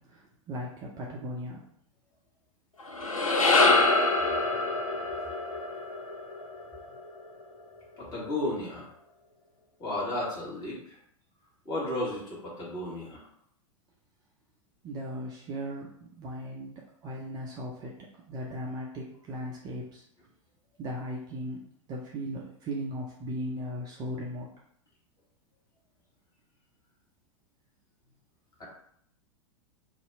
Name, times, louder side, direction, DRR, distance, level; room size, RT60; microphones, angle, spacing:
voice 1, 0.1-1.6 4.5-4.6 14.8-17.9 18.3-20.0 20.8-21.6 21.9-24.5, equal, 25° right, -3 dB, 0.5 m, -37 dB
sound 1, 2.8-7.3, left 3 dB, 80° left, 0.5 m, -25 dB
voice 2, 8.0-8.9 9.8-11.0 11.6-13.2 28.6-28.7, left 1 dB, 25° left, -5 dB, 1.4 m, -33 dB
2.7 x 2.3 x 4.1 m, 0.67 s
figure-of-eight pair, 95°, 17 cm